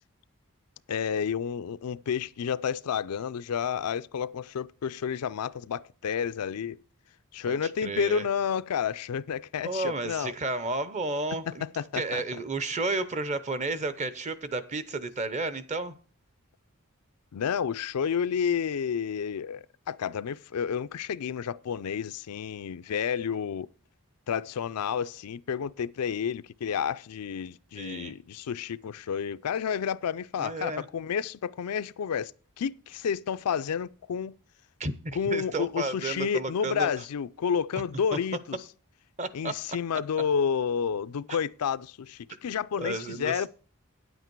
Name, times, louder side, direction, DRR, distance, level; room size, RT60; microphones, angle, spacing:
voice 1, 0.9-6.8 7.3-10.3 11.8-12.2 17.3-23.7 24.3-32.3 32.6-34.4 35.2-38.6 39.3-43.5, left 7 dB, 90° left, 0.4 m, -30 dB
voice 2, 7.5-8.3 9.6-11.7 11.9-16.0 27.8-28.1 30.4-30.9 34.8-36.9 39.2-39.5 41.3-41.4 42.8-43.5, right 2 dB, 30° right, 0.7 m, -32 dB
9.5 x 8.1 x 4.6 m
head